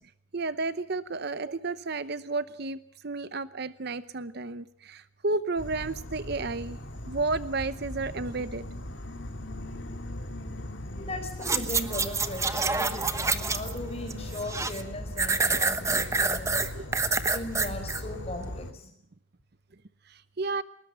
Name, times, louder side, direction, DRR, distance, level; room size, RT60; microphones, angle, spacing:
voice 1, 0.3-6.8 7.1-8.6 16.7-16.8 20.1-20.6, right 3 dB, 50° right, 14 dB, 0.8 m, -32 dB
Insect / Frog, 5.6-18.7, left 1 dB, 60° left, 2.6 m, -39 dB
voice 2, 10.9-16.9 17.3-18.9, left 1 dB, 30° left, 6 dB, 4.8 m, -38 dB
sound 1, 11.4-13.8 14.1-14.8 15.2-18.0 18.5-18.6, right 4 dB, 15° right, 1.1 m, -27 dB
20.5 x 20.0 x 7.1 m, 0.66 s
head